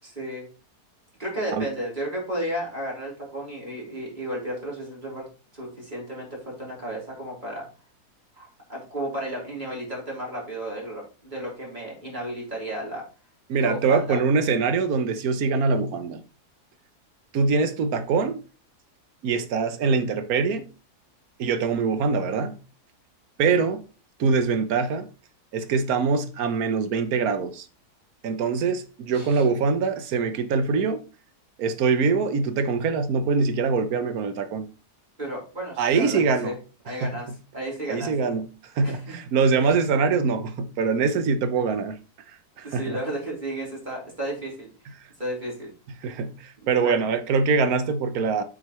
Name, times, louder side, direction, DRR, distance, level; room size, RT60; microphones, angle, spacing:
voice 1, 0.0-0.5 1.2-5.2 5.5-7.7 8.4-13.0 13.6-14.2 29.1-29.4 35.2-36.5 36.8-38.1 38.8-39.2 39.6-39.7 42.6-44.7 45.2-45.7 46.8-47.0, right 1 dB, 30° right, 3.9 m, -33 dB
voice 2, 13.5-16.2 17.3-18.4 19.2-20.7 21.4-22.5 23.4-23.8 24.2-25.1 25.5-27.7 28.2-31.0 31.6-34.7 35.8-36.6 37.0-37.1 37.9-38.5 38.8-42.0 42.6-43.0 46.0-48.4, right 5 dB, 65° right, 1.4 m, -23 dB
8.1 x 6.2 x 3.1 m
omnidirectional pair, 1.7 m